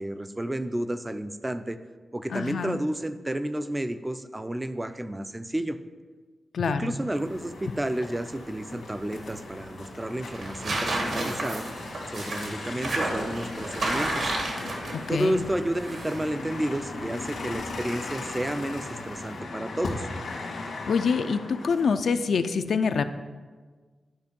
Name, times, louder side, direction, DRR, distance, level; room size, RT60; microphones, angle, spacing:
voice 1, 0.0-1.8 2.1-5.8 6.7-11.7 12.1-14.3 15.1-20.1, right 1 dB, 15° right, 10 dB, 0.4 m, -31 dB
voice 2, 2.3-2.8 6.5-6.9 15.1-15.4 20.9-23.0, left 5 dB, 70° left, 9 dB, 0.4 m, -25 dB
sound 1, 7.0-21.9, left 3 dB, 90° left, 1.7 m, -38 dB
sound 2, 7.2-19.4, right 2 dB, 65° right, 1.7 m, -34 dB
10.5 x 5.1 x 5.2 m, 1.4 s
wide cardioid pair, 145°, 0 cm